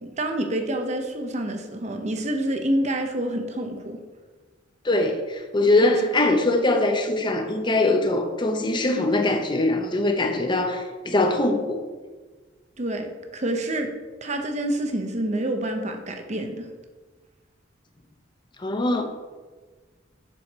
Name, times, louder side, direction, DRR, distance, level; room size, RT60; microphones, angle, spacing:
voice 1, 0.0-4.0 5.8-6.0 10.2-10.4 12.8-13.9 14.2-16.7, right 1 dB, 35° right, 5 dB, 0.8 m, -27 dB
voice 2, 4.8-11.8 18.6-19.0, left 2 dB, 25° left, 5 dB, 0.7 m, -22 dB
7.6 x 6.4 x 4.2 m, 1.3 s
head